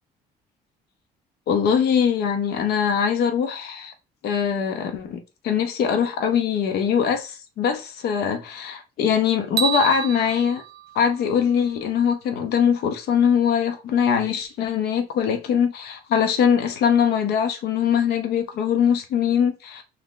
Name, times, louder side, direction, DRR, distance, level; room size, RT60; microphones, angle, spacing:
voice 1, 1.5-3.9 4.2-10.6 10.9-19.8, left 7 dB, 75° left, 0.8 m, -22 dB
sound 1, 9.6-11.8, right 9 dB, 70° right, 0.5 m, -29 dB
3.1 x 2.8 x 3.8 m
cardioid pair, 110°, 17 cm